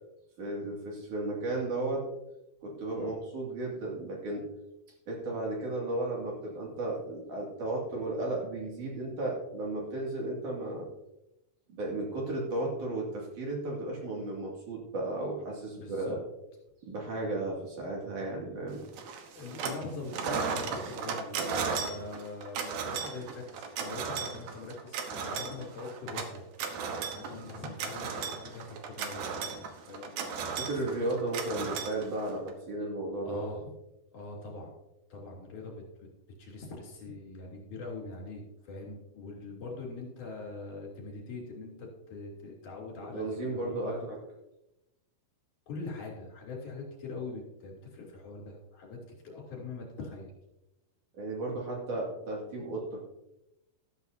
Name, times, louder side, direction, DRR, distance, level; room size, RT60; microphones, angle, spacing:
voice 1, 0.4-2.0 2.6-4.4 5.1-10.9 11.7-16.2 16.8-18.8 30.6-33.5 43.1-44.2 51.1-53.0, right 2 dB, 55° right, -2 dB, 3.7 m, -34 dB
voice 2, 15.8-16.2 19.3-26.4 27.1-30.6 30.9-31.1 33.2-33.6 34.1-34.7 35.1-35.8 36.4-44.0 45.7-50.3, left 3 dB, 55° left, -2 dB, 4.6 m, -43 dB
sound 1, 19.0-19.8 20.1-32.5, right 5 dB, 75° right, 3.0 m, -35 dB
13.0 x 13.0 x 2.8 m, 0.90 s
omnidirectional pair, 4.4 m